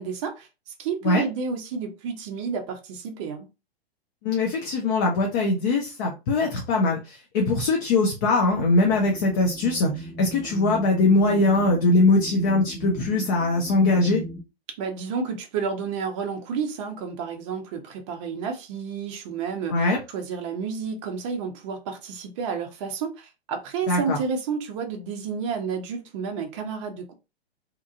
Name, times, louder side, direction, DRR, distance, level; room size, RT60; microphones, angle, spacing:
voice 1, 0.0-3.5 14.8-27.1, right 5 dB, 30° right, 0.6 m, -31 dB
voice 2, 4.2-14.2 19.7-20.0 23.9-24.2, left 2 dB, 20° left, 0.4 m, -21 dB
sound 1, 8.5-14.4, left 1 dB, ahead, 0.9 m, -37 dB
2.8 x 2.4 x 2.4 m
figure-of-eight pair, 115°, 32 cm